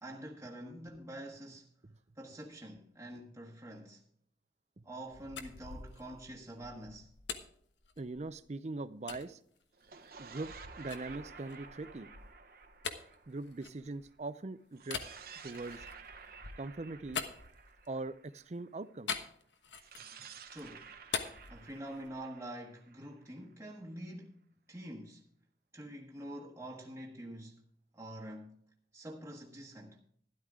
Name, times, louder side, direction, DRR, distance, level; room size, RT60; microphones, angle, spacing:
voice 1, 0.0-1.7 2.2-4.0 4.8-7.1 20.5-20.9 21.5-24.4 24.7-25.3 25.7-27.6 27.9-28.6 28.9-30.0, right 1 dB, 15° right, 1.2 m, -46 dB
sound 1, 5.1-8.4 9.1-9.3 9.8-14.2 14.8-18.1 19.1-20.2 20.5-22.3, left 6 dB, 85° left, 1.2 m, -44 dB
voice 2, 8.0-9.4 10.2-12.1 13.3-15.0 15.4-15.9 16.6-17.2 17.9-19.2, right 2 dB, 40° right, 0.5 m, -41 dB
sound 2, 9.7-14.1 14.7-18.7 19.7-23.5, right 5 dB, 55° right, 0.9 m, -53 dB
12.5 x 11.5 x 3.7 m
head